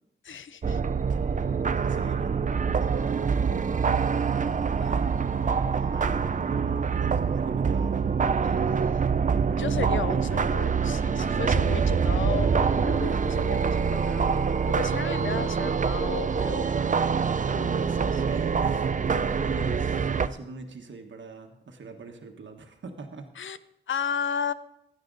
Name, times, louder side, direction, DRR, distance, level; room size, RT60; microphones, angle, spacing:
voice 1, 0.2-0.8 4.8-5.1 8.4-8.6 9.3-16.7 17.5-17.8 19.1-19.3 23.4-23.6 23.9-24.5, left 7 dB, 80° left, 14 dB, 0.7 m, -34 dB
sound 1, 0.6-20.3, right 6 dB, 40° right, 0.5 m, -25 dB
sound 2, 1.2-19.3, right 2 dB, 15° right, 1.7 m, -47 dB
voice 2, 1.7-4.3 5.3-8.0 17.6-23.3, right 3 dB, 70° right, 4 dB, 1.4 m, -42 dB
16.5 x 11.5 x 4.0 m, 0.83 s
wide cardioid pair, 90°, 20 cm